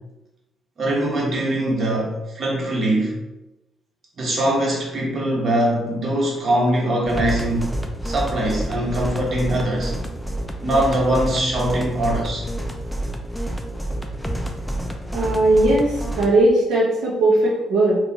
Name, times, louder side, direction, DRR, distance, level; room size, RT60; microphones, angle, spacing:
voice 1, 0.8-3.1 4.2-7.7 8.0-9.9 10.6-12.5, right 1 dB, 50° right, -3 dB, 1.2 m, -22 dB
sound 1, 7.0-16.3, right 1 dB, ahead, 0.5 m, -28 dB
voice 2, 15.1-18.0, right 2 dB, 80° right, -6 dB, 0.8 m, -18 dB
3.9 x 2.5 x 2.9 m, 0.95 s
cardioid pair, 90°, 0 cm